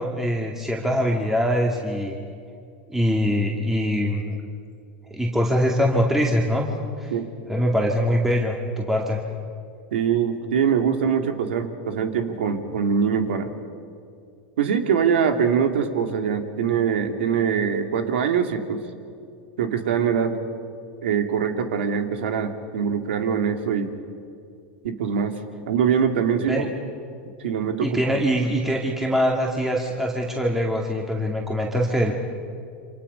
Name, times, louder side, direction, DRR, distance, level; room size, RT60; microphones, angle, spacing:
voice 1, 0.0-2.2 2.9-4.4 5.1-6.7 7.0-7.1 7.5-9.2 26.5-26.7 27.8-32.1, equal, 5° right, -1 dB, 2.3 m, -23 dB
voice 2, 9.9-13.5 14.6-18.8 19.6-20.4 21.0-23.9 24.8-25.4 25.6-26.7 27.4-28.1, right 7 dB, 85° right, 6 dB, 2.4 m, -23 dB
28.0 x 27.0 x 5.6 m, 2.4 s
supercardioid pair, 125°, 6 cm